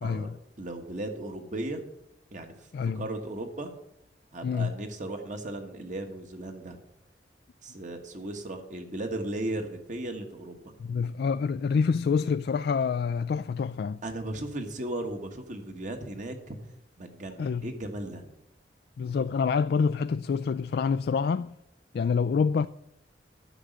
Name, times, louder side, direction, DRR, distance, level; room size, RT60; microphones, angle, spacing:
voice 1, 0.0-0.3 2.7-3.0 4.4-4.7 10.8-14.0 17.4-17.7 19.0-21.5 21.9-22.7, left 5 dB, 60° left, 0.3 m, -27 dB
voice 2, 0.6-1.8 2.3-2.7 2.9-3.7 4.3-6.8 7.6-10.6 14.0-16.6 17.0-18.3, right 1 dB, 45° right, 1.5 m, -36 dB
9.9 x 6.3 x 8.0 m
head